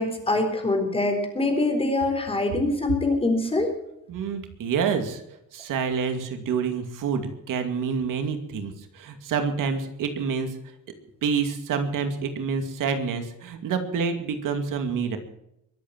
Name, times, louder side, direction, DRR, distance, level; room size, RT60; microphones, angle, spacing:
voice 1, 0.0-3.7, left 2 dB, 20° left, 4 dB, 4.1 m, -24 dB
voice 2, 4.1-5.2 5.5-7.2 7.5-10.6 11.2-15.2, right 6 dB, 90° right, 7 dB, 2.5 m, -27 dB
23.0 x 8.5 x 7.5 m, 0.81 s
cardioid pair, 150°, 31 cm